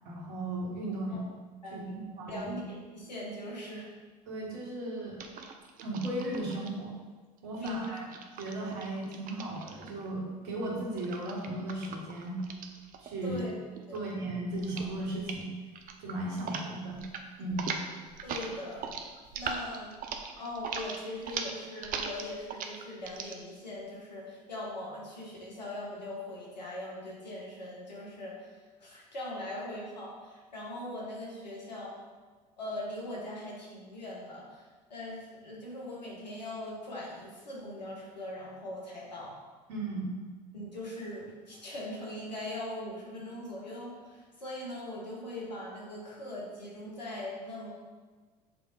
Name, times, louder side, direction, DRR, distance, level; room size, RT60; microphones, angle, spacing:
voice 1, 0.1-1.2 1.7-2.5 4.3-5.2 5.8-6.9 7.4-8.1 8.4-12.4 13.0-13.4 13.9-15.5 16.0-17.0 17.4-17.8 39.7-40.1, right 1 dB, 60° right, -3 dB, 1.8 m, -36 dB
voice 2, 1.6-2.0 2.3-3.9 7.6-8.0 13.2-13.5 13.9-14.1 18.2-18.9 19.3-19.9 20.4-32.0 32.6-39.4 40.5-47.7, left 1 dB, 85° left, -4 dB, 1.5 m, -41 dB
sound 1, 5.2-6.7 7.5-10.1 11.0-13.5 13.8-14.2 14.6-14.9 15.2-15.4 15.8-16.7 16.9-17.2 17.5-23.4, right 6 dB, 40° right, 0.7 m, -40 dB
6.7 x 3.6 x 4.1 m, 1.4 s
figure-of-eight pair, 70°, 21 cm